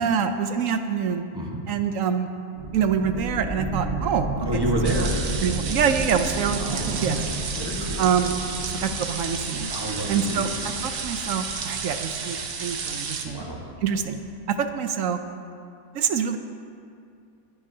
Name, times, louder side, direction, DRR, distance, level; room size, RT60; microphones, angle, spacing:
voice 1, 0.0-1.3 1.7-2.3 2.7-4.6 5.4-7.2 8.0-8.3 8.6-9.7 10.1-13.4 13.8-14.2 14.6-15.2 15.9-16.4, right 7 dB, 65° right, 8 dB, 0.9 m, -25 dB
sound 1, 2.6-14.0, right 2 dB, 45° right, 1.7 m, -33 dB
voice 2, 4.4-5.2 6.6-8.1 9.7-10.5 13.2-13.6, right 1 dB, 15° right, -2 dB, 1.3 m, -29 dB
sound 2, 4.8-13.3, right 5 dB, 85° right, 1.5 m, -32 dB
21.0 x 10.5 x 2.8 m, 2.4 s
omnidirectional pair, 1.7 m